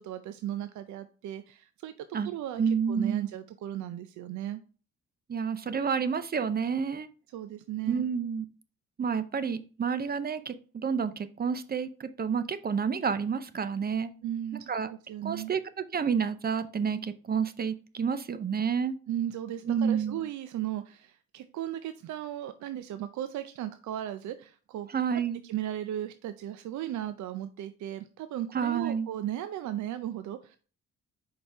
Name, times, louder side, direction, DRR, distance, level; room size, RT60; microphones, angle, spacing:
voice 1, 0.0-4.6 7.3-8.0 14.2-15.6 19.1-24.9 25.4-30.6, right 12 dB, 70° right, 0.5 m, -36 dB
voice 2, 2.6-3.3 5.3-7.1 7.9-8.4 9.0-14.1 14.7-14.9 15.2-18.9 19.7-20.2 24.9-25.4 28.5-29.1, right 6 dB, 30° right, 0.7 m, -29 dB
5.2 x 4.3 x 4.6 m
cardioid pair, 90°, 30 cm